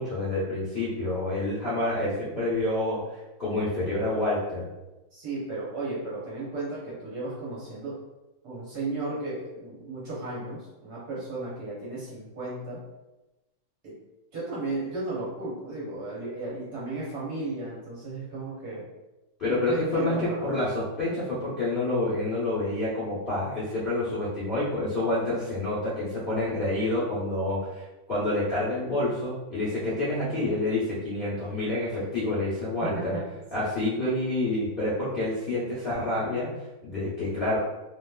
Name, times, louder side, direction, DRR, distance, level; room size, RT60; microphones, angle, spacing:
voice 1, 0.0-3.0 3.4-4.7 19.4-33.2 33.5-36.5 36.8-37.6, left 2 dB, 40° left, -12 dB, 0.8 m, -28 dB
voice 2, 5.1-8.0 8.4-12.8 13.8-14.0 14.3-18.9 19.5-20.5 32.8-33.2 33.5-33.7, right 2 dB, 55° right, -7 dB, 1.3 m, -34 dB
3.2 x 3.1 x 2.3 m, 1.0 s
omnidirectional pair, 2.3 m